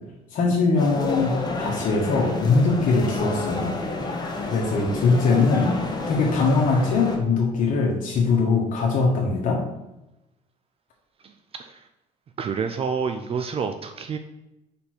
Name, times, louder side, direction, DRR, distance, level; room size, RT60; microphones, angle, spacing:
voice 1, 0.3-3.8 4.1-5.7 6.1-9.6, left 4 dB, 65° left, -2 dB, 1.4 m, -22 dB
sound 1, 0.8-7.2, left 2 dB, 25° left, 1.5 m, -30 dB
voice 2, 12.4-14.2, right 6 dB, 40° right, 7 dB, 0.5 m, -28 dB
5.1 x 4.4 x 4.5 m, 0.94 s
supercardioid pair, 85°, 15 cm